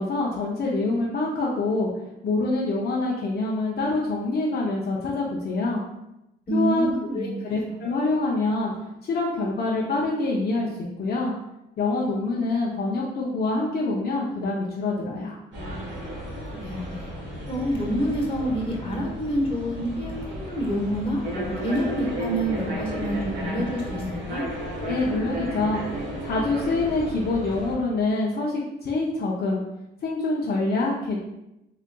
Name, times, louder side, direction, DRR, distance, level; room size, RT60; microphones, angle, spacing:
voice 1, 0.0-1.9 2.2-5.8 6.5-6.9 7.1-8.7 9.0-11.3 11.8-15.4 24.8-25.8 26.2-29.6 30.0-31.2, left 2 dB, 55° left, -4 dB, 0.6 m, -25 dB
voice 2, 6.5-7.3 16.6-16.9 17.5-24.5, equal, 25° left, -2 dB, 1.2 m, -27 dB
sound 1, 15.5-27.7, right 1 dB, 70° right, 1.2 m, -33 dB
3.8 x 3.2 x 2.3 m, 0.89 s
cardioid pair, 90°, 20 cm